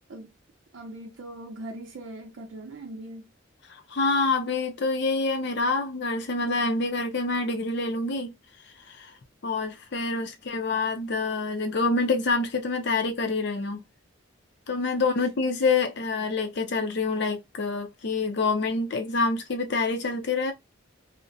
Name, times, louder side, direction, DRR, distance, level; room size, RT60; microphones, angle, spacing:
voice 1, 0.7-3.3 10.1-10.2 15.0-15.1 15.4-15.5, right 1 dB, 90° right, 0.5 m, -41 dB
voice 2, 3.7-8.4 8.9-9.1 9.4-13.8 14.7-20.5, left 3 dB, 60° left, 0.6 m, -27 dB
2.5 x 2.1 x 2.5 m
head